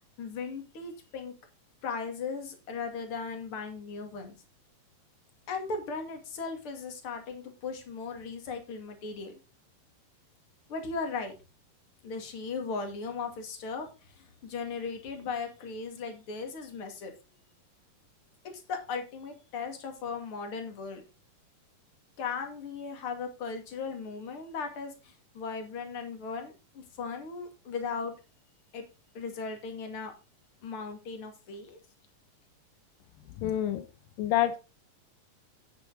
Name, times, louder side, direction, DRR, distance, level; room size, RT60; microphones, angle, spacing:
voice 1, 0.2-1.3 1.8-4.3 5.5-9.3 10.7-11.3 12.0-17.1 18.5-21.0 22.2-28.1 28.7-28.8 29.1-30.1 30.6-31.8, left 4 dB, 45° left, 5 dB, 2.9 m, -37 dB
voice 2, 33.4-33.8 34.2-34.6, left 12 dB, 85° left, 11 dB, 2.6 m, -27 dB
9.6 x 9.4 x 3.9 m, 0.30 s
omnidirectional pair, 3.9 m